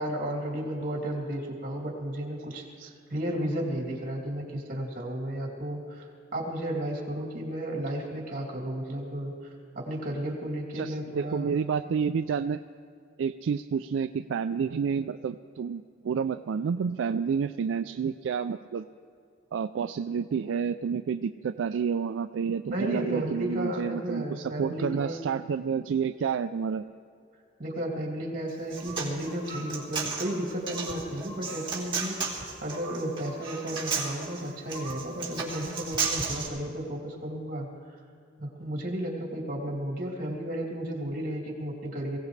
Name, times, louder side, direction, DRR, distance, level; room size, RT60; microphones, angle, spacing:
voice 1, 0.0-11.5 22.7-25.3 27.6-32.2 32.6-38.0 38.4-42.2, right 1 dB, 45° right, -1 dB, 2.9 m, -33 dB
voice 2, 10.7-12.6 13.2-18.8 19.5-26.9, right 6 dB, 75° right, 9 dB, 0.3 m, -29 dB
Human voice, 28.5-36.5, right 5 dB, 25° right, 2.7 m, -34 dB
22.5 x 16.5 x 3.3 m, 2.4 s
head